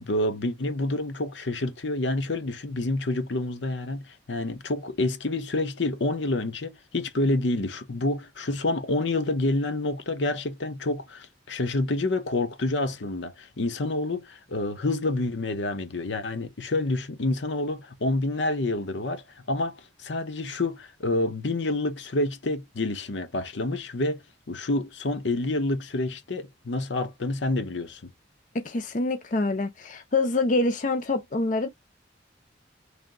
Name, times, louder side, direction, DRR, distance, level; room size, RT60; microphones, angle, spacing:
voice 1, 0.0-24.2 24.5-28.1, left 2 dB, 80° left, 0.8 m, -28 dB
voice 2, 28.5-31.7, left 2 dB, 45° left, 0.6 m, -26 dB
3.4 x 2.6 x 3.8 m
head